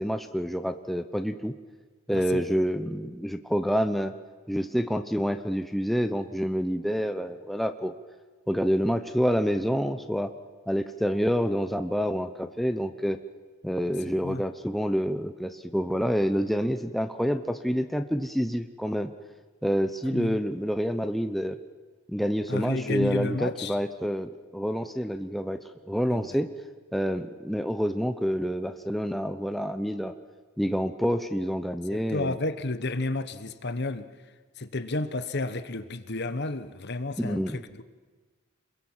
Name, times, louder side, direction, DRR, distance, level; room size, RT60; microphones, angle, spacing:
voice 1, 0.0-1.5 2.1-4.1 4.5-7.9 8.5-10.3 10.7-13.2 13.6-19.1 19.6-21.6 22.1-26.5 26.9-30.1 30.6-32.4 37.2-37.6, equal, ahead, 0.8 m, -28 dB
voice 2, 2.1-2.4 14.2-14.4 20.1-20.4 22.5-23.8 26.1-26.4 31.9-34.1 34.6-37.8, left 2 dB, 50° left, 1.1 m, -31 dB
27.0 x 22.0 x 7.5 m
head